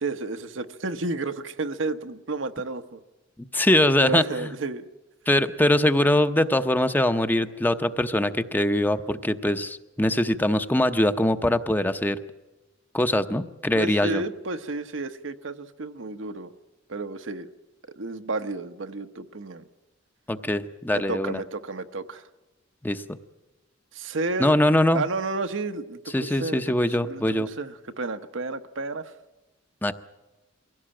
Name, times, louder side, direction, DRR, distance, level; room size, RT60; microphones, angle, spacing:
voice 1, 0.0-3.0 4.0-4.9 13.7-16.5 16.9-17.5 18.0-19.6 20.9-22.3 23.9-24.5 24.9-26.6 27.0-29.1, right 3 dB, 75° right, 9 dB, 1.0 m, -31 dB
voice 2, 3.5-4.5 5.3-12.2 12.9-14.2 20.3-21.4 22.8-23.0 24.4-25.0 26.1-27.5 29.8-29.9, left 1 dB, 10° left, 10 dB, 0.7 m, -22 dB
23.0 x 16.5 x 8.8 m, 1.1 s
head